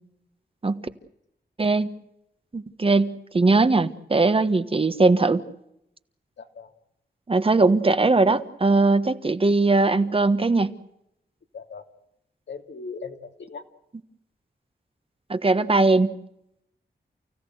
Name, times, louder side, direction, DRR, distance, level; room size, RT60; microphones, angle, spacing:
voice 1, 1.6-1.9 2.5-5.4 7.3-10.7 15.3-16.1, right 3 dB, 30° right, 11 dB, 1.3 m, -20 dB
voice 2, 6.4-6.7 11.5-11.8 12.5-13.6, left 4 dB, 85° left, 5 dB, 2.9 m, -39 dB
29.5 x 16.5 x 8.0 m, 0.80 s
wide cardioid pair, 135°, 18 cm